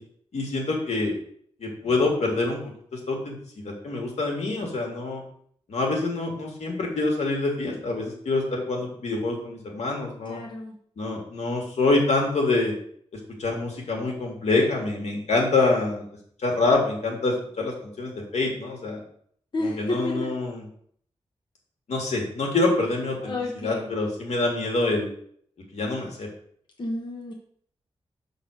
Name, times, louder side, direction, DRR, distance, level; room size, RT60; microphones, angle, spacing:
voice 1, 0.3-1.1 1.6-5.2 5.7-10.4 11.0-12.7 13.1-16.1 16.4-19.0 19.6-20.7 21.9-23.3 23.6-25.1 25.7-26.3, left 3 dB, 80° left, -1 dB, 2.2 m, -26 dB
voice 2, 10.3-10.8 19.5-20.3 23.2-23.9 26.8-27.3, left 2 dB, 45° left, 0 dB, 1.1 m, -31 dB
6.6 x 4.0 x 6.4 m, 0.62 s
wide cardioid pair, 155°, 11 cm